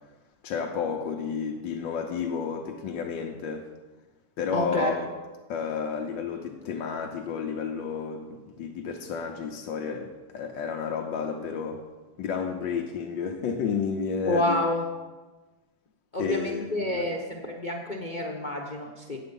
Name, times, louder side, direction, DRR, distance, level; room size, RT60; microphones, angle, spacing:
voice 1, 0.4-3.7 4.4-5.1 5.5-11.8 12.2-14.6 16.2-17.1, left 6 dB, 90° left, 2 dB, 1.5 m, -31 dB
voice 2, 4.5-4.9 14.3-14.8 16.1-19.2, left 1 dB, 35° left, 1 dB, 0.8 m, -28 dB
9.0 x 7.8 x 5.3 m, 1.2 s
omnidirectional pair, 2.0 m